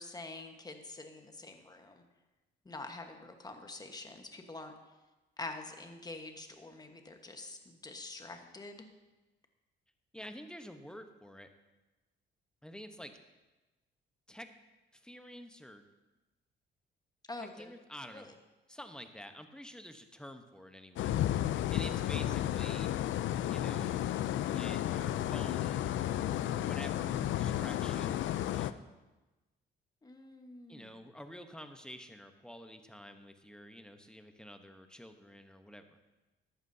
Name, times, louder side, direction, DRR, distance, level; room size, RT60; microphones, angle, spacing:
voice 1, 0.0-2.0 2.6-4.7 5.4-8.9 17.3-17.7 18.1-18.3 30.0-31.1, left 2 dB, 20° left, 5 dB, 1.3 m, -46 dB
voice 2, 10.1-11.5 12.6-13.1 14.3-14.5 14.9-15.8 17.4-18.3 18.7-21.1 21.7-22.9 23.5-24.0 24.5-28.8 30.7-36.0, equal, 5° left, 7 dB, 0.9 m, -49 dB
sound 1, 21.0-28.7, left 12 dB, 75° left, 0.5 m, -32 dB
14.0 x 11.0 x 2.8 m, 1.1 s
cardioid pair, 90°, 20 cm